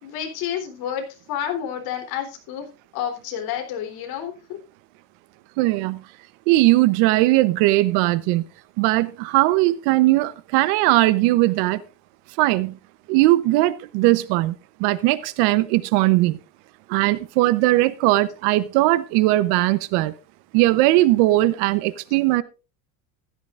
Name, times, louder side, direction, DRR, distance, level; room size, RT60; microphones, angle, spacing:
voice 1, 0.0-2.7 2.9-4.6, left 9 dB, 55° left, 3.7 m, -30 dB
voice 2, 5.6-6.0 6.5-8.5 8.8-11.8 12.4-12.8 13.1-14.5 14.8-16.4 16.9-20.1 20.5-22.4, right 17 dB, 65° right, 1.0 m, -19 dB
15.0 x 12.5 x 2.5 m
cardioid pair, 155°, 43 cm